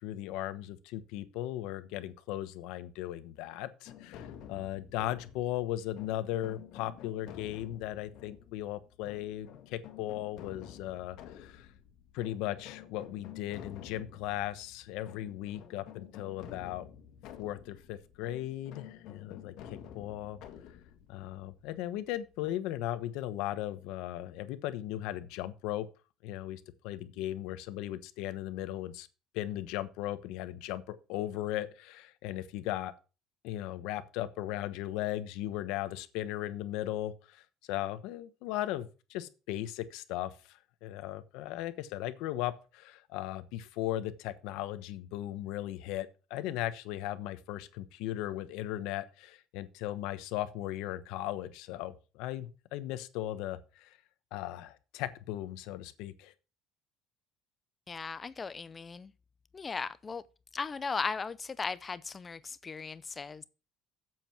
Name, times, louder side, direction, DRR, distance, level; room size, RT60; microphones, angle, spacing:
voice 1, 0.0-11.7 12.1-16.9 17.4-19.5 19.9-20.4 21.1-25.9 26.2-29.1 29.3-32.9 33.4-54.0 54.3-56.3, left 14 dB, 80° left, 1.1 m, -37 dB
sound 1, 3.9-22.6, left 9 dB, 65° left, 1.8 m, -50 dB
voice 2, 57.9-59.1 59.5-60.2 60.5-63.4, left 5 dB, 20° left, 0.5 m, -37 dB
7.7 x 7.5 x 5.9 m
cardioid pair, 170°, 0 cm